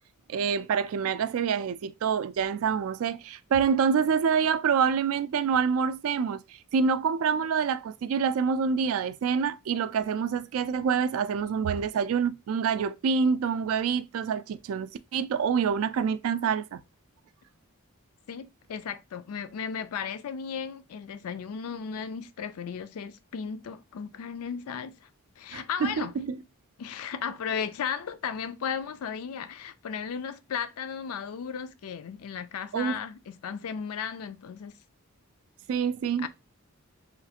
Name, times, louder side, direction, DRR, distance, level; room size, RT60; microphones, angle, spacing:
voice 1, 0.3-6.4 6.7-16.8 25.5-26.4 32.7-33.0 35.7-36.3, right 6 dB, 70° right, 0.3 m, -26 dB
voice 2, 18.3-25.1 25.4-26.1 26.8-34.7 36.2-36.3, left 7 dB, 80° left, 0.4 m, -35 dB
3.2 x 2.4 x 2.7 m
head